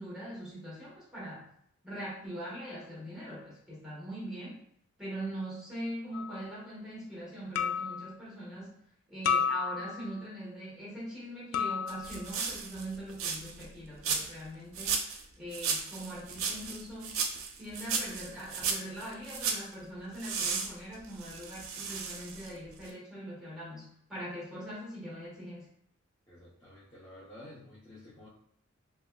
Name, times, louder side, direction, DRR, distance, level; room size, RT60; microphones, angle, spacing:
voice 1, 0.0-1.5 1.8-4.6 5.0-8.8 9.1-15.0 15.4-17.2 17.6-25.7, right 1 dB, 5° right, -8 dB, 1.3 m, -42 dB
sound 1, 6.1-6.4 7.6-8.1 9.2-10.1 11.5-12.2, left 6 dB, 80° left, 0.3 m, -31 dB
sound 2, 11.9-13.7 14.0-14.4 14.7-15.2 15.5-19.7 20.2-22.6 22.8-22.9, right 5 dB, 75° right, 0.5 m, -35 dB
voice 2, 26.3-28.3, left 1 dB, 15° left, -10 dB, 0.7 m, -51 dB
3.2 x 2.7 x 2.2 m, 0.66 s
head